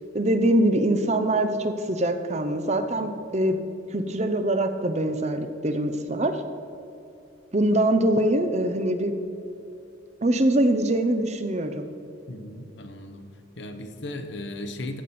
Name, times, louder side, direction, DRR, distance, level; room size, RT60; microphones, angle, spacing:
voice 1, 0.1-3.6 3.9-6.4 7.5-9.1 10.2-11.9, right 1 dB, 35° right, 8 dB, 0.7 m, -23 dB
voice 2, 12.3-13.3 13.6-15.0, left 1 dB, 60° left, 7 dB, 0.9 m, -36 dB
14.5 x 7.3 x 4.3 m, 2.8 s
head